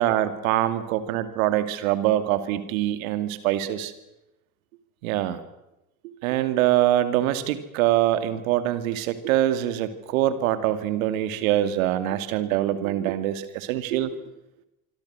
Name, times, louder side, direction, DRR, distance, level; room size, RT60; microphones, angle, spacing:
voice 1, 0.0-3.9 5.0-5.4 6.2-14.1, right 13 dB, 65° right, 11 dB, 2.6 m, -24 dB
25.5 x 25.5 x 6.3 m, 0.90 s
figure-of-eight pair, 65°, 45 cm